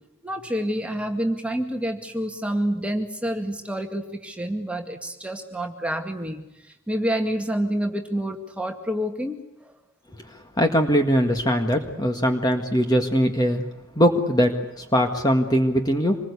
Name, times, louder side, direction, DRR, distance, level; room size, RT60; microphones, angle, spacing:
voice 1, 0.2-6.4 6.9-9.7, equal, 5° right, 3 dB, 2.1 m, -28 dB
voice 2, 10.6-13.6 14.0-14.5 14.9-16.2, equal, 20° left, 5 dB, 1.7 m, -21 dB
26.5 x 21.0 x 8.4 m, 0.89 s
head